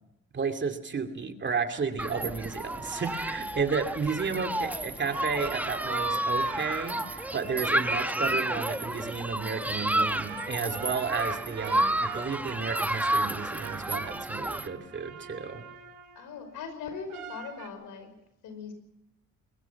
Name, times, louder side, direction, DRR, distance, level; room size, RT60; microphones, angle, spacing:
voice 1, 0.3-15.7, right 5 dB, 40° right, 6 dB, 2.6 m, -32 dB
Human group actions, 2.0-14.7, right 1 dB, 5° right, 1.1 m, -31 dB
sound 1, 2.6-3.8 4.4-9.4 10.1-16.3 17.1-17.7, right 9 dB, 85° right, 2.6 m, -44 dB
voice 2, 16.2-18.1 18.4-18.7, left 6 dB, 85° left, 8 dB, 5.4 m, -40 dB
23.0 x 21.5 x 5.9 m, 0.87 s
cardioid pair, 90°, 30 cm